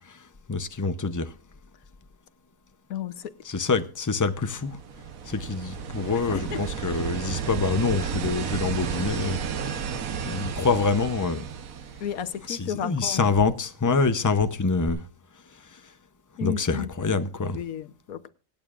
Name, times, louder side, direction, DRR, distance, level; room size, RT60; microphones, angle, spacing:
voice 1, 0.5-1.3 3.4-4.8 5.3-9.4 9.7-11.4 12.5-15.0 16.4-17.6, left 4 dB, 20° left, 0.5 m, -26 dB
voice 2, 2.9-3.3 6.3-6.6 12.0-13.3 16.4-17.3 17.5-18.3, left 9 dB, 85° left, 1.3 m, -33 dB
sound 1, 4.3-12.7 14.9-15.0, right 6 dB, 75° right, 1.4 m, -32 dB
25.5 x 8.8 x 2.5 m
omnidirectional pair, 1.4 m